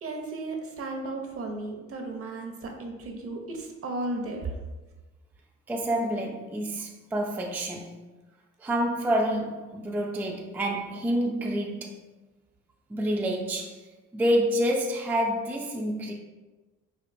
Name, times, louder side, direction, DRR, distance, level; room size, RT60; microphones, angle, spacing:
voice 1, 0.0-4.5, right 2 dB, 50° right, 2 dB, 0.7 m, -34 dB
voice 2, 5.7-8.0 8.6-12.0 12.9-13.8 14.1-16.1, equal, 5° right, 0 dB, 0.3 m, -28 dB
4.4 x 2.5 x 2.5 m, 1.2 s
cardioid pair, 90°, 30 cm